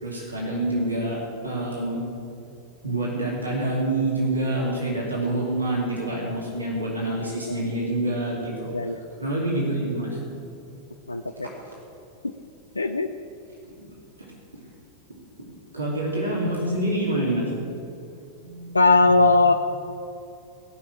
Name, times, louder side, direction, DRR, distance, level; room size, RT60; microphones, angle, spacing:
voice 1, 0.0-1.2 1.4-2.0 2.8-8.7 9.2-10.2 13.8-13.9 15.7-17.4 18.4-19.1, right 1 dB, 80° right, -4 dB, 2.8 m, -27 dB
voice 2, 11.1-11.5 12.8-13.1 18.7-19.5, left 3 dB, 80° left, 7 dB, 0.5 m, -19 dB
17.0 x 6.3 x 8.9 m, 2.7 s
figure-of-eight pair, 90°, 0 cm